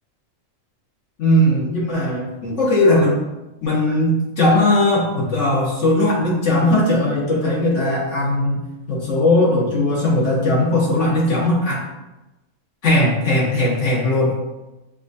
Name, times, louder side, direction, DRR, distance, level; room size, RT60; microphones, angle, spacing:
voice 1, 1.2-3.2 3.6-8.6 8.9-11.9 12.8-14.4, left 1 dB, 60° left, -5 dB, 1.6 m, -18 dB
6.5 x 2.5 x 2.6 m, 1.0 s
omnidirectional pair, 1.5 m